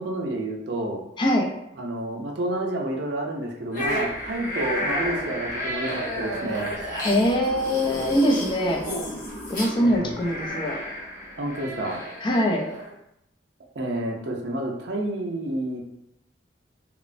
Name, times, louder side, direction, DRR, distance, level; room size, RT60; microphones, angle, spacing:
voice 1, 0.0-1.0 1.8-6.7 9.8-10.1 11.4-12.0 13.8-15.8, right 1 dB, 65° right, 0 dB, 0.5 m, -29 dB
voice 2, 1.2-1.5 7.0-8.8 9.5-10.8 12.2-12.6, equal, 25° left, -1 dB, 0.4 m, -22 dB
sound 1, 3.7-12.9, equal, 45° left, 0.8 m, -32 dB
Motor vehicle (road) / Siren, 7.4-11.6, equal, 85° left, 1.0 m, -40 dB
2.9 x 2.0 x 2.5 m, 0.80 s
head